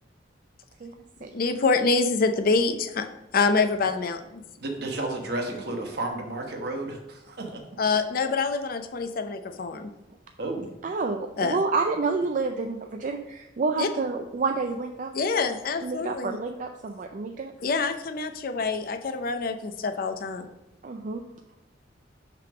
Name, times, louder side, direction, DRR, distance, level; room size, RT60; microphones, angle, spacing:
voice 1, 1.3-3.1 3.3-4.2 7.8-9.9 11.4-11.6 13.8-13.9 15.1-16.4 17.6-20.5, left 4 dB, 55° left, 7 dB, 0.5 m, -26 dB
voice 2, 4.6-7.6 10.4-10.7, right 2 dB, 60° right, 2 dB, 1.2 m, -32 dB
voice 3, 10.8-15.1 15.8-17.5 20.8-21.2, right 4 dB, 45° right, 4 dB, 0.4 m, -29 dB
5.8 x 3.6 x 5.9 m, 0.94 s
head